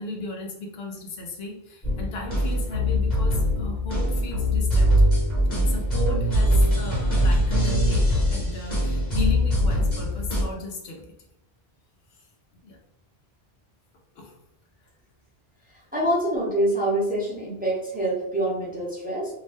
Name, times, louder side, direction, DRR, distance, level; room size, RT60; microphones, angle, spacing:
voice 1, 0.0-4.9 5.5-11.1 12.1-12.3 12.6-12.8 14.1-14.4, left 2 dB, 75° left, 1 dB, 0.9 m, -35 dB
sound 1, 1.8-10.4, equal, 45° left, 1.2 m, -22 dB
voice 2, 15.9-19.3, right 1 dB, 10° right, -5 dB, 0.7 m, -25 dB
2.8 x 2.1 x 3.2 m, 0.85 s
omnidirectional pair, 1.1 m